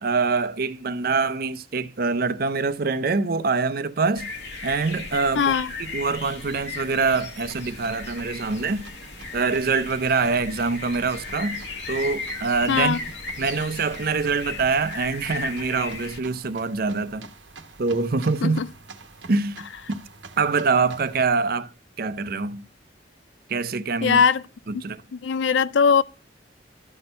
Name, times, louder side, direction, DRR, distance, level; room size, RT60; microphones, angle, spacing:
voice 1, 0.0-4.3 4.6-5.5 5.9-8.9 9.3-11.6 11.9-13.0 13.4-17.3 17.8-18.6 19.3-19.6 19.9-20.0 20.4-21.7 22.0-22.6 23.5-24.2 24.8-25.0, right 4 dB, 55° right, 0.6 m, -24 dB
sound 1, 4.2-16.2, left 3 dB, 65° left, 1.3 m, -36 dB
voice 2, 5.3-5.7 12.7-13.1 18.4-18.7 24.0-24.4 24.7-24.8 25.1-26.0, left 6 dB, 80° left, 0.4 m, -20 dB
sound 2, 6.9-21.3, right 4 dB, 85° right, 1.1 m, -47 dB
12.5 x 4.3 x 5.3 m
head